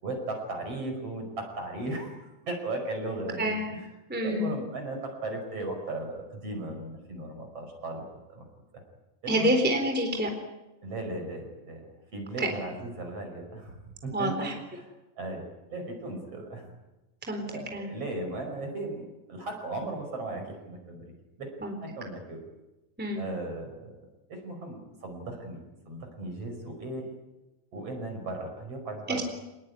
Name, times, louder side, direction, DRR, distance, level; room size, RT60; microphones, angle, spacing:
voice 1, 0.0-3.9 4.2-8.5 8.7-8.8 9.2-9.5 10.8-16.7 17.5-21.1 21.4-21.5 21.8-22.4 23.2-24.0 24.3-25.6 25.9-27.1 27.7-29.2, right 2 dB, 40° right, 4 dB, 6.2 m, -37 dB
voice 2, 3.4-3.7 4.1-4.5 9.3-10.3 12.4-12.5 14.1-14.5 17.3-17.4 17.7-17.9 21.6-21.7 23.0-23.2 29.1-29.2, equal, 5° right, 4 dB, 3.4 m, -27 dB
27.0 x 20.0 x 9.8 m, 1.0 s
omnidirectional pair, 4.2 m